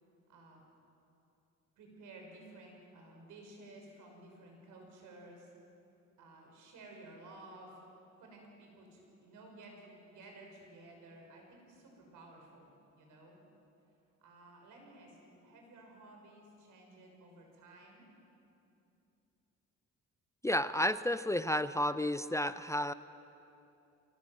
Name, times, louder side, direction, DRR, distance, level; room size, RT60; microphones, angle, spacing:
voice 1, 0.3-0.6 1.8-5.5 6.2-7.8 8.2-12.7 13.0-13.4 14.2-18.0, right 2 dB, 85° right, 1 dB, 6.0 m, -54 dB
voice 2, 20.4-22.9, left 1 dB, 10° left, 13 dB, 0.5 m, -31 dB
23.5 x 19.0 x 7.8 m, 2.7 s
cardioid pair, 90°, 30 cm